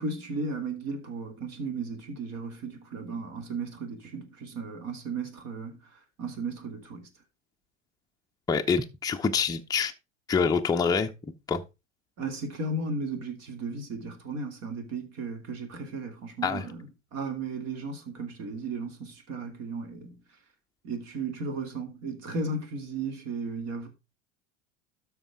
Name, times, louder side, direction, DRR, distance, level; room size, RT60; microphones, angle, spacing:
voice 1, 0.0-5.8 6.2-7.1 12.2-16.9 17.1-20.2 20.8-23.9, right 3 dB, 45° right, 2.7 m, -35 dB
voice 2, 8.5-9.9 10.3-11.1 11.5-11.6 16.4-16.7, left 5 dB, 10° left, 0.7 m, -26 dB
12.5 x 4.7 x 3.7 m
figure-of-eight pair, 80°, 35 cm